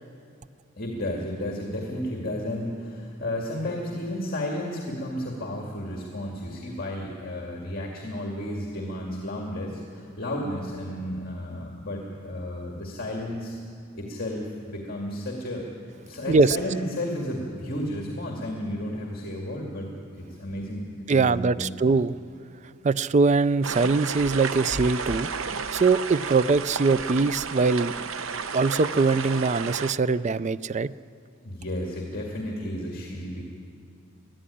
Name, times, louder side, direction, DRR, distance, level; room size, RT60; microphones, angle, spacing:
voice 1, 0.8-13.6 13.9-15.7 16.0-19.9 20.2-21.9 31.4-33.4, left 1 dB, 45° left, -1 dB, 2.3 m, -32 dB
voice 2, 21.1-22.2 22.8-25.3 25.7-27.9 28.5-30.9, right 4 dB, 35° right, 16 dB, 0.4 m, -22 dB
sound 1, 23.6-29.9, right 5 dB, 75° right, 0.8 m, -32 dB
21.5 x 14.0 x 10.0 m, 2.5 s
head